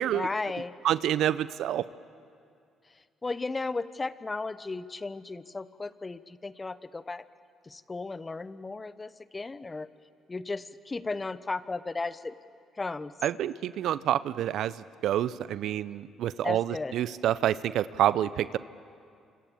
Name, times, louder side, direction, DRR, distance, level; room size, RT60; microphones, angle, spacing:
voice 1, 0.1-0.7 2.9-7.3 7.6-9.9 10.3-12.4 12.8-13.1 16.4-16.9, left 3 dB, 25° left, 15 dB, 1.1 m, -35 dB
voice 2, 0.8-1.9 13.2-18.6, right 11 dB, 70° right, 17 dB, 0.6 m, -28 dB
28.0 x 25.5 x 7.2 m, 2.3 s
hypercardioid pair, 55°, 0 cm